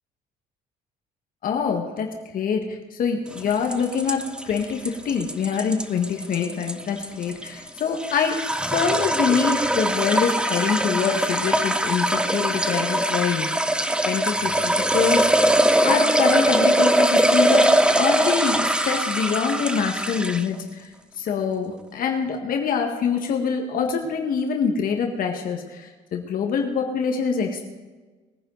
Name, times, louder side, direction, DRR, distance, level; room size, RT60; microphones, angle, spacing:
voice 1, 1.4-8.4 8.7-13.5 14.1-15.5 15.8-17.7 18.0-20.9 21.2-27.7, left 6 dB, 55° left, 3 dB, 1.7 m, -25 dB
sound 1, 3.4-20.5, right 1 dB, 5° right, 0.8 m, -21 dB
21.5 x 10.0 x 4.0 m, 1.3 s
cardioid pair, 110°, 17 cm